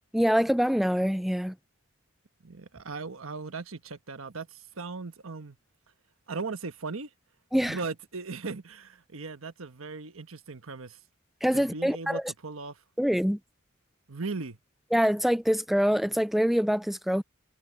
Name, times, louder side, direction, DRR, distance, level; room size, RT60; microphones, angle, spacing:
voice 1, 0.1-1.5 7.5-7.8 11.4-12.2 13.0-13.4 14.9-17.2, equal, ahead, 0.4 m, -25 dB
voice 2, 2.4-5.6 6.3-7.1 7.7-11.0 11.5-12.8 14.1-14.6, right 4 dB, 85° right, 1.3 m, -38 dB
head